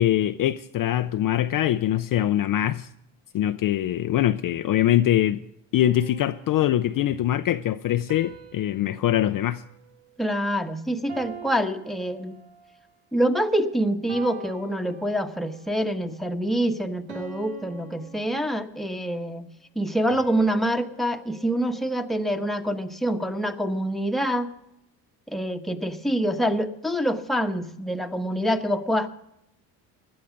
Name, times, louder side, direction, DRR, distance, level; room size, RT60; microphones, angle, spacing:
voice 1, 0.0-2.9 3.3-5.4 5.7-9.6, left 12 dB, 45° left, 0.6 m, -23 dB
sound 1, 5.8-7.1 8.1-10.6 11.1-12.8 13.4-13.6 14.1-15.6 16.1-16.4 17.1-19.0 20.1-22.5, right 7 dB, 75° right, 2.3 m, -45 dB
voice 2, 10.2-12.4 13.1-19.4 19.7-24.5 25.3-29.1, equal, ahead, 1.1 m, -26 dB
16.5 x 11.0 x 5.1 m
hypercardioid pair, 65°, 48 cm